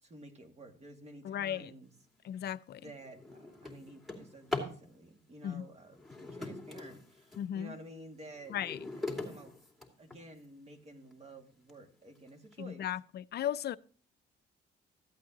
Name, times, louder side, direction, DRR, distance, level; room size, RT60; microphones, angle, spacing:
voice 1, 0.0-1.9 2.7-8.6 9.0-9.6 10.0-12.9, right 1 dB, 35° right, 2.0 m, -52 dB
voice 2, 1.2-1.7 2.2-2.8 5.4-5.6 7.4-7.7 8.5-8.9 12.6-13.8, left 10 dB, 55° left, 0.4 m, -36 dB
Drawer open or close, 2.2-2.4 2.8-4.8 5.9-7.5 8.0-10.5 11.1-11.2 11.7-11.8 12.2-12.5, left 3 dB, ahead, 2.7 m, -41 dB
14.0 x 8.5 x 2.8 m
cardioid pair, 90°, 20 cm